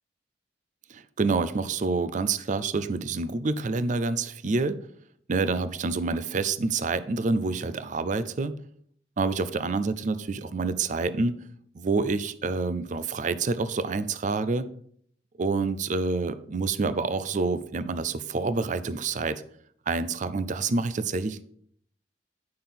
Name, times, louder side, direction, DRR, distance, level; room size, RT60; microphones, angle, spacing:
voice 1, 0.9-4.8 5.3-8.5 9.2-11.4 11.7-14.7 15.4-19.4 19.9-21.4, right 3 dB, 45° right, 14 dB, 0.5 m, -27 dB
8.7 x 5.8 x 3.7 m, 0.64 s
head